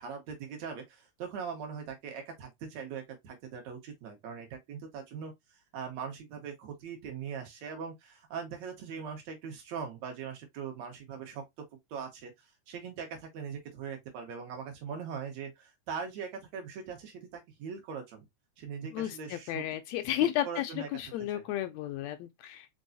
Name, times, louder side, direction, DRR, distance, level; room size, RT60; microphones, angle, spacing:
voice 1, 0.0-5.3 5.7-11.4 11.9-12.3 12.7-18.3 18.6-19.6 20.2-20.9 21.3-21.4, right 6 dB, 70° right, 2.4 m, -41 dB
voice 2, 18.9-22.7, left 13 dB, 75° left, 1.7 m, -33 dB
5.3 x 3.7 x 2.6 m
omnidirectional pair, 3.4 m